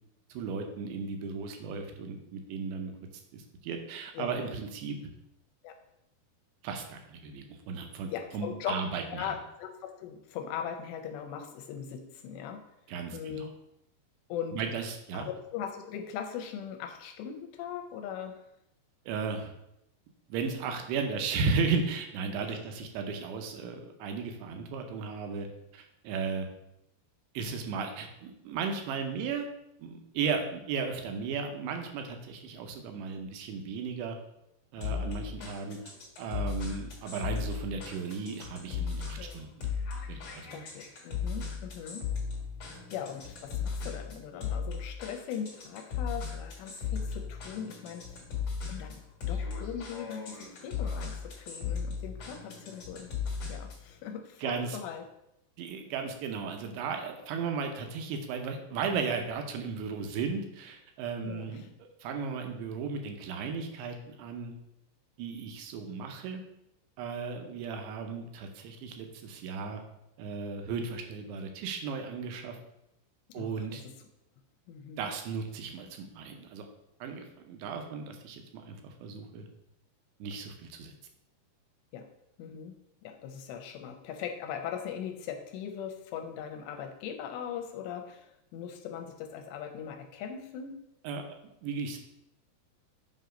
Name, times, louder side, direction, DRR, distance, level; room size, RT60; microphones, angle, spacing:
voice 1, 0.3-2.9 3.3-5.0 6.6-9.3 12.9-13.5 14.5-15.3 19.1-19.5 20.3-25.5 25.7-26.5 27.3-29.5 29.8-34.2 34.7-35.8 36.2-39.5 40.1-40.6 42.7-42.8 54.4-54.8 55.6-64.5 65.2-66.4 67.0-69.8 70.2-72.6 73.3-73.8 75.0-76.7 77.0-79.5 80.2-80.9 91.0-91.2 91.6-92.0, right 5 dB, 80° right, 4 dB, 2.8 m, -35 dB
voice 2, 4.1-4.5 5.6-5.7 8.1-8.8 9.1-12.6 13.1-13.5 14.3-14.6 15.1-18.4 22.5-22.6 34.9-35.1 35.4-35.5 39.2-39.4 40.5-42.0 42.9-48.2 48.7-49.0 49.3-53.1 53.5-55.0 61.2-61.7 73.4-73.8 74.7-75.1 81.9-82.0 82.4-82.8 83.0-90.7, left 8 dB, 80° left, 4 dB, 2.7 m, -40 dB
sound 1, 34.8-53.9, left 6 dB, 50° left, 2.1 m, -36 dB
7.8 x 2.9 x 5.0 m, 0.83 s
omnidirectional pair, 5.0 m